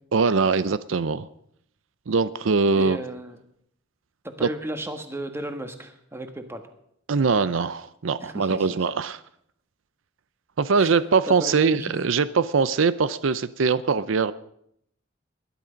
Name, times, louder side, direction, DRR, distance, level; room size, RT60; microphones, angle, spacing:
voice 1, 0.1-1.3 2.1-3.0 4.4-4.5 7.1-9.2 10.6-14.3, right 4 dB, 80° right, 15 dB, 0.6 m, -22 dB
voice 2, 2.7-3.4 4.2-6.6 8.2-8.8 10.8-10.9 11.3-11.9, right 1 dB, 15° right, 6 dB, 1.5 m, -34 dB
19.5 x 11.0 x 5.2 m, 0.71 s
head